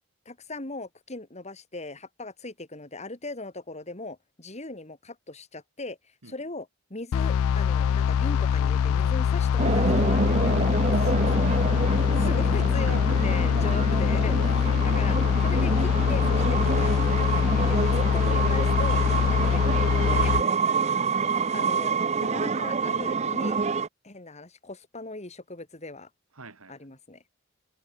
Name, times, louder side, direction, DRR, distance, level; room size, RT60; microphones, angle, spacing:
voice 1, 0.3-6.0 6.2-11.5 12.3-20.6 21.5-23.6 24.0-26.1 26.7-27.2, left 2 dB, 30° left, 2.7 m, -39 dB
sound 1, 7.1-20.4, left 8 dB, 80° left, 0.3 m, -23 dB
sound 2, 9.6-23.9, right 4 dB, 30° right, 0.6 m, -27 dB
voice 2, 11.0-12.2 12.8-13.8 20.4-21.3 26.3-26.8, right 2 dB, 85° right, 2.9 m, -44 dB
head